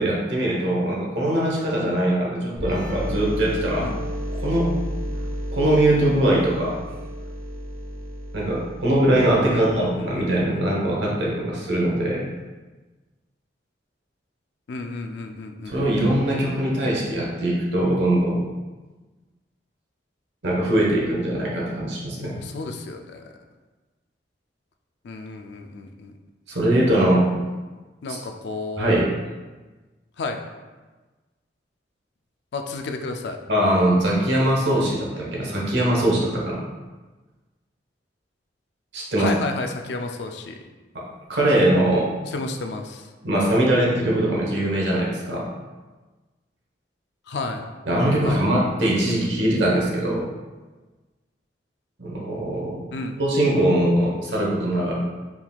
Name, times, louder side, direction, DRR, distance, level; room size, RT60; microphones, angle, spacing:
voice 1, 0.0-3.9 4.3-4.8 5.5-6.8 8.3-12.2 15.7-18.5 20.4-22.3 26.5-27.4 28.1-28.2 28.8-29.1 33.5-36.6 38.9-39.3 40.9-42.1 43.2-45.5 47.9-50.3 52.0-52.9 53.2-54.9, right 1 dB, 75° right, -3 dB, 1.0 m, -21 dB
sound 1, 2.6-10.1, equal, 45° right, 0.8 m, -32 dB
voice 2, 9.5-10.6 14.7-15.8 22.2-23.2 25.0-26.1 28.0-29.0 30.2-30.4 32.5-33.4 39.2-40.6 42.3-43.1 47.3-47.6 48.2-48.4 52.9-53.2, left 3 dB, 65° left, 5 dB, 0.4 m, -32 dB
4.6 x 3.6 x 2.3 m, 1.2 s
head